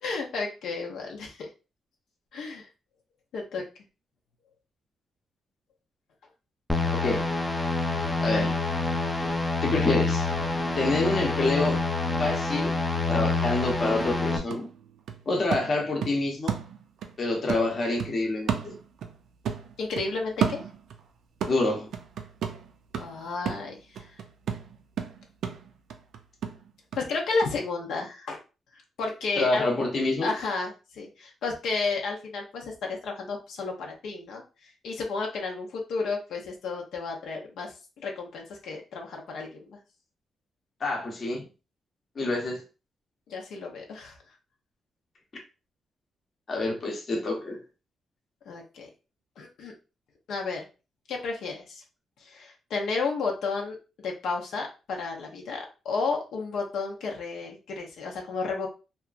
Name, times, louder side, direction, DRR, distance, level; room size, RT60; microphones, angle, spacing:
voice 1, 0.0-1.4 2.3-2.7 3.3-3.6 19.8-20.6 23.0-24.0 27.0-28.4 29.0-29.6 30.2-34.4 34.8-39.8 43.3-44.2 48.5-48.9 49.4-49.7 50.3-50.7 51.1-51.8 52.3-53.8 54.0-58.7, left 4 dB, 90° left, 0.6 m, -32 dB
sound 1, 6.7-14.4, left 3 dB, 10° left, 0.3 m, -27 dB
voice 2, 6.9-7.3 8.2-8.6 9.6-10.3 10.7-11.8 12.2-12.8 13.1-14.7 15.3-16.6 17.2-18.7 21.5-21.9 29.4-30.3 40.8-41.5 42.2-42.6 46.5-47.6, left 2 dB, 35° left, 0.7 m, -27 dB
sound 2, 13.5-13.6 14.0-17.2 17.5-19.2 19.4-21.1 21.4-27.1 27.4-27.5, right 8 dB, 75° right, 0.3 m, -33 dB
2.8 x 2.3 x 2.4 m
wide cardioid pair, 170°, 0 cm